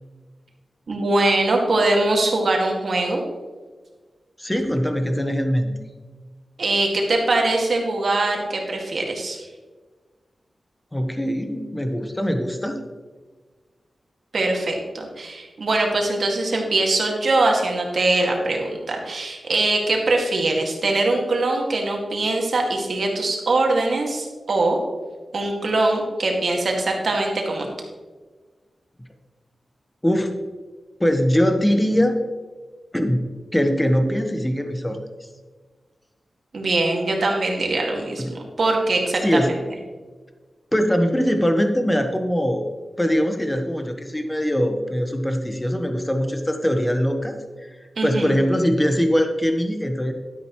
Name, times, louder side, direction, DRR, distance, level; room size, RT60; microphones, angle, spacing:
voice 1, 0.9-3.2 6.6-9.5 14.3-24.8 25.3-27.7 36.5-39.6 48.0-48.4, right 2 dB, 65° right, 0 dB, 2.1 m, -22 dB
voice 2, 4.4-5.7 10.9-12.8 30.0-30.3 31.0-32.2 32.9-35.0 38.2-38.3 39.2-39.5 40.7-42.7 43.0-47.7 48.0-50.1, equal, 10° left, 5 dB, 1.2 m, -22 dB
12.0 x 10.0 x 3.1 m, 1.4 s
wide cardioid pair, 110°, 0 cm